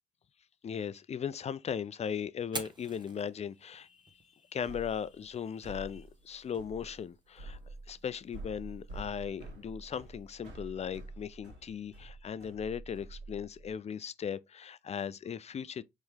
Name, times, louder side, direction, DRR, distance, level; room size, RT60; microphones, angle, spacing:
voice 1, 0.6-4.2 4.5-7.6 7.9-15.8, left 7 dB, 35° left, 0.5 m, -38 dB
Fire, 2.4-10.4, right 2 dB, 25° right, 1.2 m, -50 dB
sound 1, 4.6-13.7, right 2 dB, 70° right, 1.8 m, -48 dB
4.3 x 3.5 x 3.4 m
hypercardioid pair, 55°, 19 cm